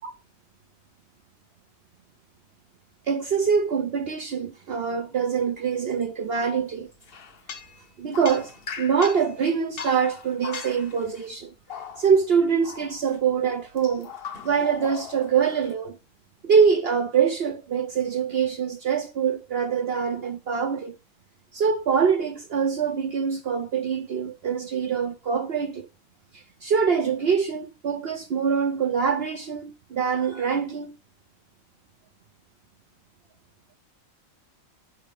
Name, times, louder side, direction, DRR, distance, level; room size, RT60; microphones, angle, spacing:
voice 1, 3.1-6.9 8.0-11.5 12.0-14.1 14.4-16.0 16.4-20.9 21.5-25.9 26.3-30.9, right 6 dB, 55° right, 0.8 m, -24 dB
sound 1, 7.0-9.4 9.8-11.3 11.7-12.3 12.6-13.2 13.8-15.7, left 6 dB, 50° left, 0.9 m, -39 dB
9.4 x 5.0 x 3.4 m
omnidirectional pair, 1.4 m